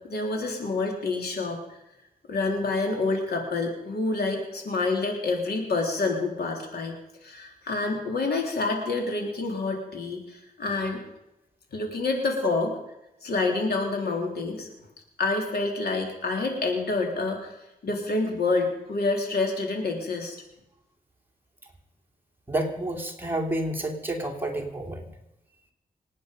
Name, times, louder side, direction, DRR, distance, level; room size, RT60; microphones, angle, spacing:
voice 1, 0.1-1.8 2.3-6.9 7.2-11.0 11.7-12.7 13.2-14.7 15.2-17.5 17.8-20.4, left 3 dB, 90° left, 2 dB, 3.5 m, -28 dB
voice 2, 22.5-25.1, right 1 dB, 15° right, 1 dB, 2.9 m, -29 dB
26.0 x 9.4 x 5.3 m, 0.88 s
wide cardioid pair, 95°, 16 cm